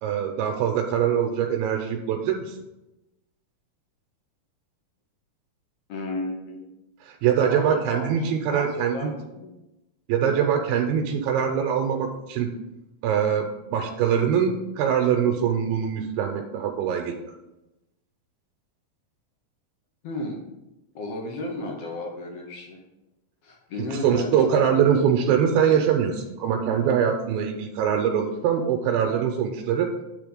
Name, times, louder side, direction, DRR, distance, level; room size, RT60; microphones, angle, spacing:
voice 1, 0.0-2.6 7.0-9.1 10.1-12.5 13.0-17.2 23.8-29.9, right 8 dB, 90° right, 3 dB, 2.4 m, -23 dB
voice 2, 5.9-6.6 7.5-9.5 20.0-20.4 20.9-22.8 23.4-24.6, left 1 dB, 65° left, 0 dB, 1.6 m, -34 dB
9.2 x 3.5 x 5.1 m, 0.96 s
omnidirectional pair, 4.1 m